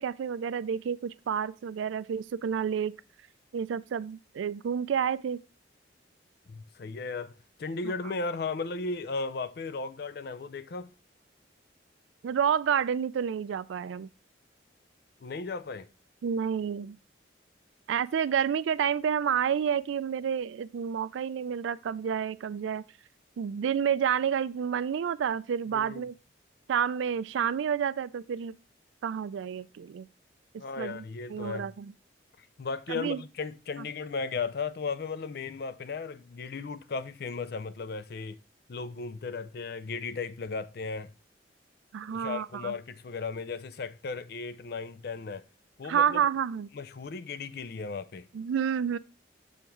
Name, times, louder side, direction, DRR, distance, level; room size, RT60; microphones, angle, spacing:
voice 1, 0.0-3.0 3.5-5.4 7.8-7.9 12.2-14.1 16.2-17.0 17.9-22.8 23.4-26.1 26.7-28.5 29.0-30.1 30.8-31.0 31.3-31.9 32.9-33.2 41.9-42.7 45.9-46.7 48.3-49.0, right 8 dB, 80° right, 0.3 m, -29 dB
voice 2, 6.5-7.3 7.6-10.9 15.2-15.9 25.7-26.0 30.6-31.7 32.6-38.4 38.7-41.1 42.1-45.4 45.8-46.2 46.7-48.3, left 4 dB, 55° left, 0.4 m, -36 dB
7.1 x 3.6 x 4.4 m
head